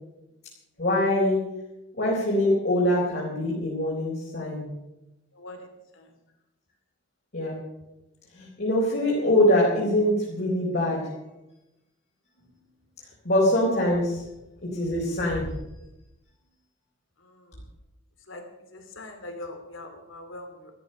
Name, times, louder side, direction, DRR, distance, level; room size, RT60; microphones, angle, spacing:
voice 1, 0.8-1.4 2.0-4.7 7.3-7.6 8.3-11.0 13.2-14.2 14.6-15.5, left 1 dB, 55° left, -5 dB, 4.2 m, -23 dB
voice 2, 5.4-5.7 18.3-18.4 18.7-20.7, left 2 dB, 80° left, 5 dB, 2.8 m, -41 dB
14.0 x 13.0 x 6.5 m, 0.94 s
head